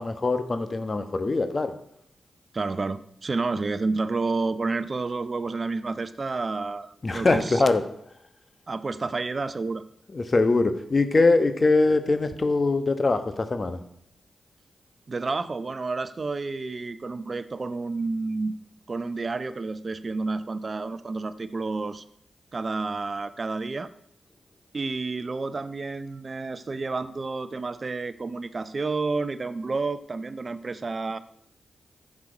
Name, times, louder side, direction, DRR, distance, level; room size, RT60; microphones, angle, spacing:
voice 1, 0.0-1.7 7.0-7.8 10.1-13.8, left 3 dB, 45° left, 9 dB, 1.1 m, -22 dB
voice 2, 2.5-7.6 8.7-9.8 15.1-18.5 18.9-22.0 22.5-23.9 24.7-31.2, right 3 dB, 50° right, 13 dB, 0.6 m, -30 dB
11.5 x 7.5 x 4.9 m, 0.71 s
supercardioid pair, 40°, 0 cm